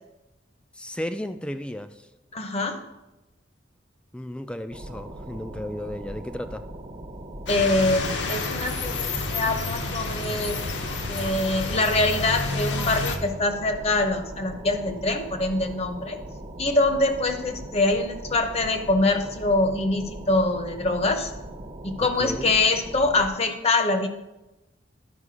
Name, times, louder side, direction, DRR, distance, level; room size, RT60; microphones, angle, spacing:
voice 1, 0.7-2.1 4.1-6.7 22.0-22.5, left 1 dB, 5° left, 9 dB, 0.3 m, -34 dB
voice 2, 2.3-2.8 7.5-9.0 9.3-10.6 11.1-16.2 16.6-21.3 21.8-24.1, left 2 dB, 35° left, 7 dB, 0.7 m, -24 dB
sound 1, 4.7-23.3, right 1 dB, 35° right, 0.8 m, -40 dB
sound 2, 7.5-13.2, left 3 dB, 65° left, 0.9 m, -29 dB
11.0 x 5.2 x 4.9 m, 1.0 s
head